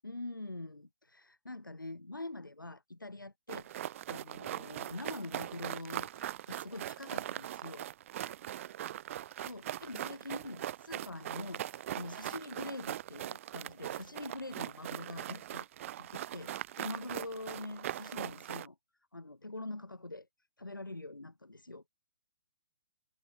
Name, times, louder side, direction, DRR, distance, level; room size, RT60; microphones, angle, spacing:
voice 1, 0.0-7.9 8.5-8.6 9.4-15.7 16.0-18.8 19.1-20.3 20.6-21.8, left 2 dB, 85° left, 6.7 m, -44 dB
sound 1, 3.5-18.7, right 12 dB, 40° right, 1.5 m, -41 dB
figure-of-eight pair, 130°, 11 cm